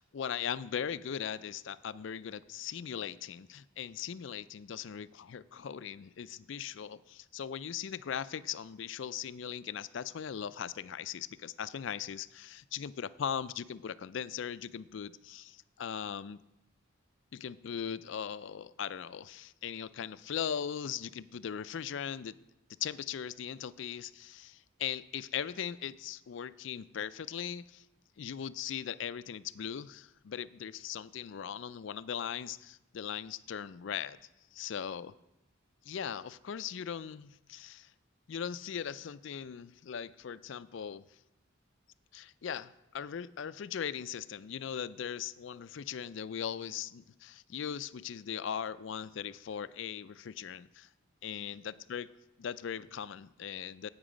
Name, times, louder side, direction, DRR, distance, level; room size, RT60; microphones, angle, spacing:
voice 1, 0.0-16.4 17.3-22.4 22.8-27.8 28.2-34.2 34.5-35.1 35.9-37.9 38.3-41.0 42.1-50.9 51.2-52.1 52.4-53.9, left 8 dB, 60° left, 16 dB, 0.4 m, -39 dB
12.5 x 8.8 x 5.0 m, 0.92 s
head